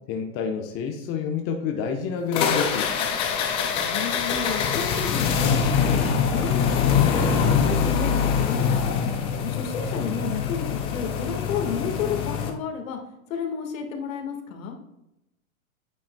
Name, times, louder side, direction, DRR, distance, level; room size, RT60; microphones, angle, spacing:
voice 1, 0.1-2.9, left 6 dB, 30° left, 3 dB, 0.9 m, -28 dB
sound 1, 2.3-12.5, left 6 dB, 15° left, 0.3 m, -24 dB
voice 2, 3.7-8.9 9.4-13.0 13.3-14.8, left 6 dB, 65° left, 3 dB, 1.7 m, -32 dB
9.0 x 8.7 x 2.2 m, 0.88 s
hypercardioid pair, 120°, 43 cm